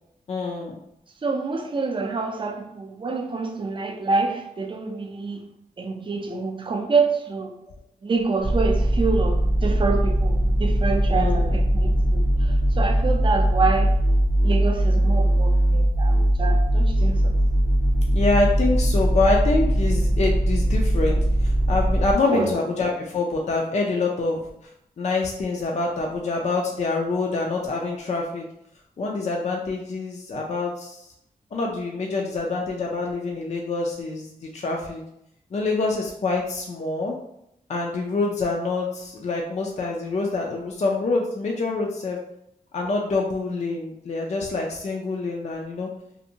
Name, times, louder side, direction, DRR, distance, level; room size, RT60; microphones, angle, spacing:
voice 1, 0.3-0.8 11.1-11.6 18.1-24.4 25.0-28.5 29.0-31.1 31.5-35.0 35.5-37.1 37.7-42.2 42.7-45.9, left 3 dB, 45° left, 0 dB, 0.4 m, -26 dB
voice 2, 1.2-5.4 5.8-7.5 8.0-13.9 14.4-17.4 22.3-22.5, right 4 dB, 30° right, 3 dB, 0.4 m, -27 dB
sub-wobble-up-and-down, 8.4-22.1, right 1 dB, 80° left, 0.8 m, -20 dB
2.6 x 2.1 x 2.7 m, 0.78 s
cardioid pair, 75°, 16 cm